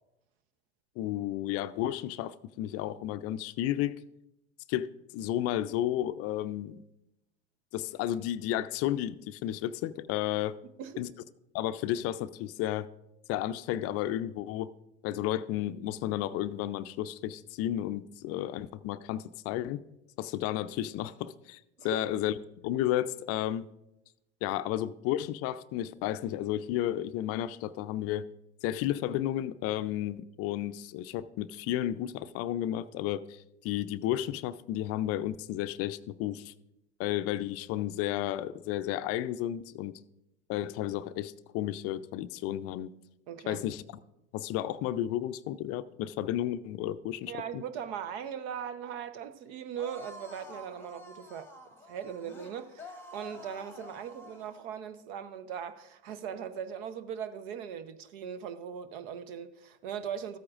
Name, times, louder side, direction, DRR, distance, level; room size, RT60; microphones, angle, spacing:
voice 1, 1.0-4.0 4.7-6.8 7.7-10.6 11.0-11.1 11.5-12.9 13.3-14.7 15.0-19.8 20.2-22.4 22.6-23.7 24.4-28.3 28.6-36.5 37.0-40.0 40.5-42.9 43.5-43.8 44.3-47.6, left 12 dB, 45° left, 0.4 m, -32 dB
voice 2, 43.3-43.6 47.3-51.5 51.9-60.4, right 8 dB, 65° right, 0.9 m, -39 dB
sound 1, 49.8-54.7, left 1 dB, 5° left, 1.1 m, -49 dB
13.5 x 8.5 x 2.5 m
hypercardioid pair, 85°, 34 cm